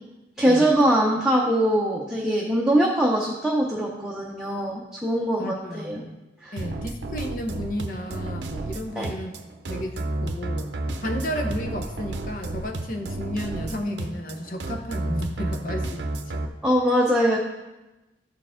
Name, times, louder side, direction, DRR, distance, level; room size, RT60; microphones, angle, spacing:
voice 1, 0.4-6.0 6.4-6.5 9.0-9.1 16.6-17.4, right 1 dB, 5° right, -4 dB, 0.7 m, -22 dB
voice 2, 5.4-6.2 6.5-9.4 9.7-10.7 11.0-16.4, equal, 50° left, 4 dB, 0.8 m, -33 dB
sound 1, 6.6-16.5, right 2 dB, 80° right, 0.6 m, -31 dB
12.0 x 4.6 x 3.6 m, 1.0 s
head